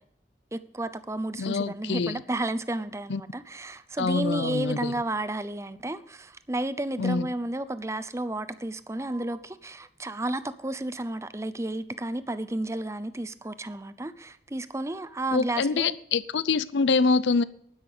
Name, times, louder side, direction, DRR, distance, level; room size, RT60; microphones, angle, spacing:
voice 1, 0.5-16.0, right 1 dB, 15° right, 0.6 m, -32 dB
voice 2, 1.4-2.2 3.1-3.2 4.0-4.9 7.0-7.3 15.3-17.4, left 4 dB, 85° left, 0.5 m, -25 dB
11.5 x 11.0 x 5.1 m
head